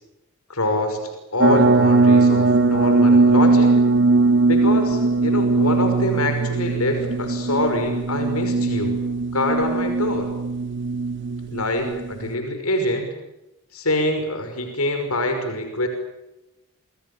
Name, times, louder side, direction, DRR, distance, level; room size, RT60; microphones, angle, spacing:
voice 1, 0.5-3.7 4.5-9.0 9.3-10.3 11.5-13.1 13.7-15.9, left 1 dB, 85° left, 6 dB, 5.8 m, -25 dB
sound 1, 1.4-12.4, right 3 dB, 55° right, 1.8 m, -19 dB
29.0 x 26.5 x 7.0 m, 0.96 s
head